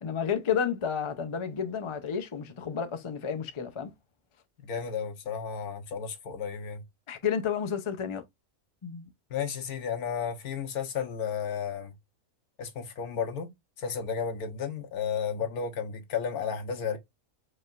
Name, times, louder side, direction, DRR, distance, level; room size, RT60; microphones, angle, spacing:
voice 1, 0.0-3.9 7.1-8.2 8.8-9.1, left 7 dB, 40° left, 0.4 m, -31 dB
voice 2, 4.6-6.8 9.3-11.9 12.6-13.5 13.8-17.0, left 7 dB, 85° left, 1.5 m, -33 dB
4.9 x 3.2 x 2.4 m
omnidirectional pair, 1.5 m